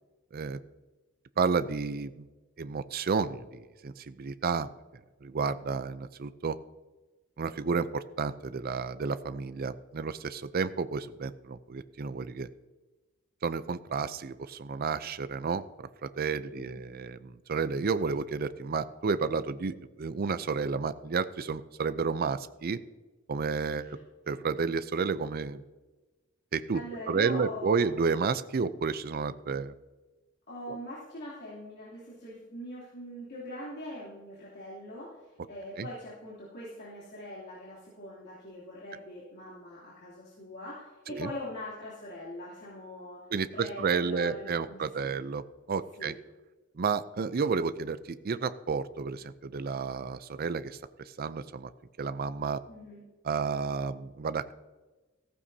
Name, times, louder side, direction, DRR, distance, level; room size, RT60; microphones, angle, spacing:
voice 1, 1.4-2.3 2.6-4.7 5.2-6.6 7.4-12.5 13.4-22.8 23.3-24.0 24.3-25.6 26.5-26.8 27.1-29.7 30.7-30.8 35.8-35.9 41.1-41.3 43.3-46.1 46.8-50.8 51.2-51.7 52.0-52.6 53.2-54.5, right 5 dB, 45° right, 13 dB, 0.5 m, -31 dB
voice 2, 26.7-27.9 30.5-43.2 43.5-45.1 46.0-46.1 52.7-53.0, left 1 dB, 55° left, -8 dB, 3.0 m, -42 dB
15.5 x 14.0 x 2.8 m, 1.2 s
head